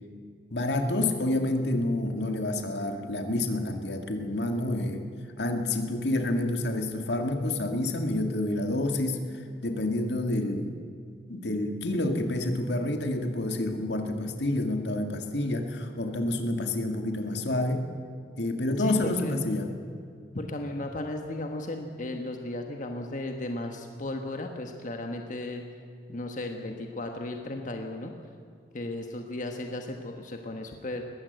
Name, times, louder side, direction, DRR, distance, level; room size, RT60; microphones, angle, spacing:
voice 1, 0.5-5.0 5.4-10.8 11.1-17.9 18.4-19.7, left 1 dB, 75° left, 5 dB, 2.0 m, -28 dB
voice 2, 18.8-19.3 20.3-25.6 26.1-28.1 28.7-31.0, left 2 dB, 45° left, 3 dB, 1.3 m, -35 dB
20.5 x 15.5 x 8.0 m, 2.3 s
head